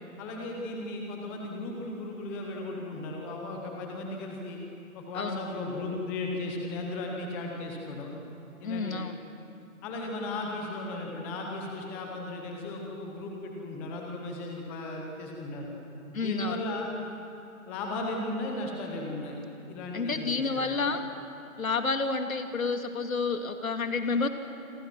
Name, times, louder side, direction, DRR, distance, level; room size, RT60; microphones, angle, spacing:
voice 1, 0.2-4.6 4.9-8.1 8.6-9.0 9.8-15.7 16.1-16.9 17.7-19.4 19.7-20.8, left 2 dB, 5° left, 1 dB, 0.7 m, -36 dB
voice 2, 8.6-9.2 16.1-16.6 19.9-21.0 21.6-24.3, left 4 dB, 70° left, 7 dB, 2.3 m, -29 dB
28.0 x 23.5 x 6.0 m, 2.8 s
figure-of-eight pair, 150°, 43 cm